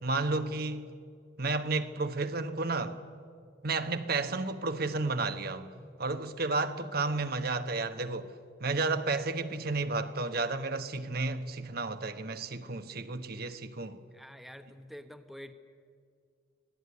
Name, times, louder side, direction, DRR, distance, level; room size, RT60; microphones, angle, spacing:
voice 1, 0.0-0.9 1.4-3.0 3.6-5.7 6.0-8.3 8.6-14.0, right 3 dB, 50° right, 1.2 m, -32 dB
voice 2, 14.1-15.5, equal, ahead, 0.9 m, -47 dB
25.5 x 18.0 x 9.6 m
head